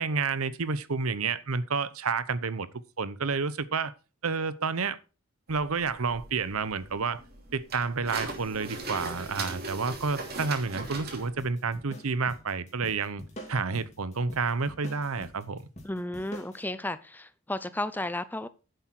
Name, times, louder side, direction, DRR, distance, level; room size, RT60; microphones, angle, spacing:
voice 1, 0.0-2.7 3.0-3.9 4.2-5.0 5.5-7.2 7.5-13.2 13.5-15.6, right 4 dB, 85° right, 0.8 m, -30 dB
sound 1, 5.5-11.3, right 3 dB, 45° right, 2.9 m, -39 dB
sound 2, 10.8-16.6, equal, 30° left, 2.8 m, -46 dB
voice 2, 15.8-18.5, left 1 dB, 10° left, 0.5 m, -33 dB
10.5 x 7.9 x 4.5 m
head